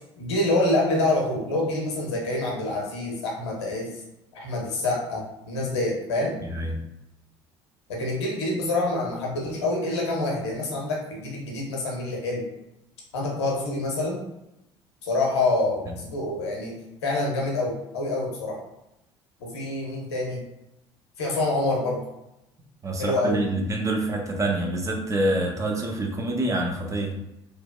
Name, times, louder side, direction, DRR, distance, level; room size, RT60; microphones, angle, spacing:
voice 1, 0.2-3.9 4.3-6.4 7.9-12.4 13.1-14.2 15.0-16.8 17.0-18.6 19.4-20.4 21.2-22.0 23.0-23.4, left 2 dB, 70° left, -1 dB, 0.7 m, -26 dB
voice 2, 6.4-6.8 15.9-16.0 22.8-27.2, right 1 dB, 20° right, 1 dB, 0.5 m, -26 dB
2.7 x 2.1 x 2.2 m, 0.88 s
figure-of-eight pair, 60°, 14 cm